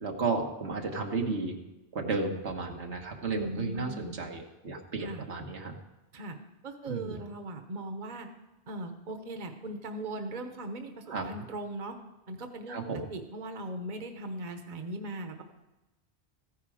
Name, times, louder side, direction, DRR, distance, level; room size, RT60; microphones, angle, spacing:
voice 1, 0.0-1.6 1.9-5.8 6.9-7.2 11.1-11.2 12.7-13.0, right 4 dB, 90° right, 2 dB, 1.7 m, -33 dB
voice 2, 3.3-4.1 5.0-5.2 6.1-6.4 6.6-8.3 8.7-12.0 12.3-12.8 13.1-15.4, right 1 dB, 45° right, 6 dB, 1.1 m, -39 dB
14.5 x 9.7 x 4.9 m, 1.0 s
omnidirectional pair, 1.1 m